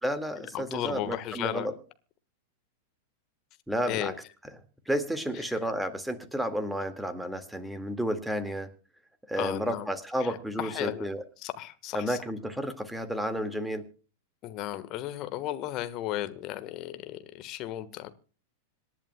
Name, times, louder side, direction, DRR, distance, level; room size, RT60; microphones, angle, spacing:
voice 1, 0.0-1.7 3.7-4.1 4.9-8.7 9.3-11.2 11.9-13.9, equal, 5° right, 8 dB, 1.9 m, -31 dB
voice 2, 0.5-1.7 3.9-4.1 5.3-5.6 9.4-9.9 10.2-11.1 11.4-12.2 14.4-18.1, left 13 dB, 40° left, 12 dB, 1.4 m, -35 dB
26.5 x 11.0 x 2.2 m, 0.36 s
figure-of-eight pair, 95°, 0 cm